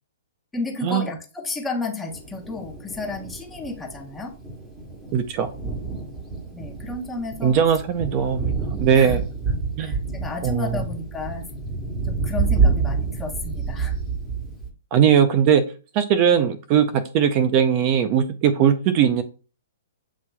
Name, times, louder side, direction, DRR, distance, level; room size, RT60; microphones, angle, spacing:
voice 1, 0.5-4.3 6.5-7.6 8.9-9.2 9.8-11.4 12.0-13.9, left 3 dB, 10° left, 2 dB, 1.0 m, -32 dB
Thunder, 2.1-14.7, right 4 dB, 10° right, 1.4 m, -28 dB
voice 2, 5.1-5.5 7.4-9.2 9.8-10.0 10.4-10.8 14.9-15.6 15.9-19.2, right 8 dB, 35° right, 10 dB, 0.5 m, -19 dB
8.0 x 2.8 x 2.3 m, 0.36 s
hypercardioid pair, 140°, 0 cm